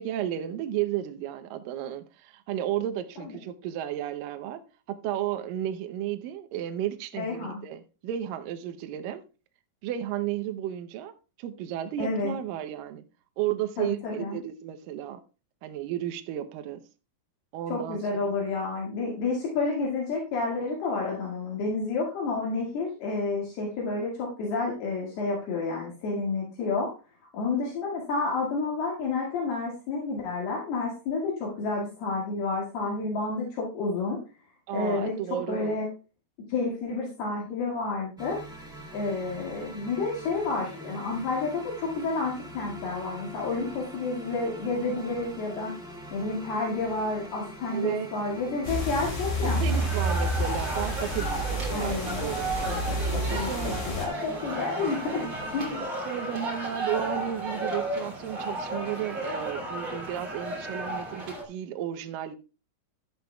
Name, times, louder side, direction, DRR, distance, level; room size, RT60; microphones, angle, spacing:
voice 1, 0.0-4.6 4.9-9.2 9.8-11.1 11.4-13.0 13.4-15.2 15.6-16.8 17.5-18.0 34.7-35.8 47.7-48.1 49.4-52.5 53.5-53.9 55.2-62.4, right 11 dB, 75° right, 2.1 m, -33 dB
voice 2, 7.2-7.6 12.0-12.4 13.8-14.4 17.7-26.9 27.3-34.2 34.7-35.1 35.5-35.9 36.5-38.4 38.9-45.8 46.1-49.8 51.2-51.4 51.7-52.3 52.6-55.2 55.5-55.8, left 3 dB, 70° left, 3.9 m, -30 dB
sound 1, 38.2-55.8, right 1 dB, 5° right, 0.8 m, -44 dB
sound 2, 48.6-54.0, equal, 35° left, 5.5 m, -29 dB
sound 3, 49.7-61.4, right 1 dB, 35° right, 3.4 m, -34 dB
13.0 x 11.5 x 2.3 m
omnidirectional pair, 4.7 m